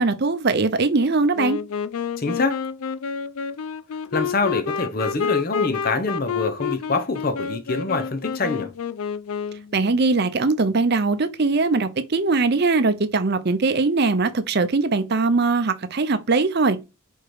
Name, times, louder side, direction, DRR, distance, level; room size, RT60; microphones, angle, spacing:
voice 1, 0.0-1.6 9.7-16.8, right 3 dB, 45° right, 0.6 m, -21 dB
Wind instrument woodwind instrument, 1.4-9.8, left 6 dB, 75° left, 0.4 m, -29 dB
voice 2, 2.2-2.6 4.1-8.7, left 3 dB, 40° left, 0.8 m, -25 dB
4.9 x 4.5 x 4.8 m
head